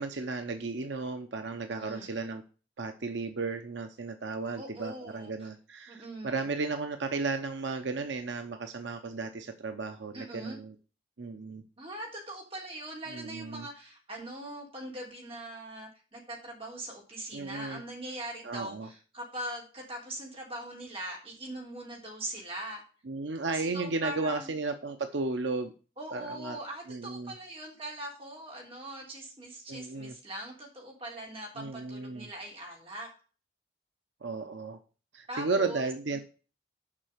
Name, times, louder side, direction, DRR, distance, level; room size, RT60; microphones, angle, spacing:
voice 1, 0.0-2.4 2.8-10.7 11.2-11.6 13.1-13.7 17.3-17.8 18.4-18.9 23.1-25.7 26.1-26.6 26.9-27.3 29.7-30.2 31.6-32.3 34.2-34.8 35.1-36.2, right 3 dB, 80° right, 7 dB, 0.8 m, -34 dB
voice 2, 1.8-2.1 4.6-5.3 5.9-6.5 10.1-10.6 11.8-22.8 23.5-24.5 26.0-33.1 35.3-35.9, right 1 dB, 30° right, -1 dB, 3.4 m, -41 dB
7.3 x 5.6 x 6.6 m, 0.37 s
head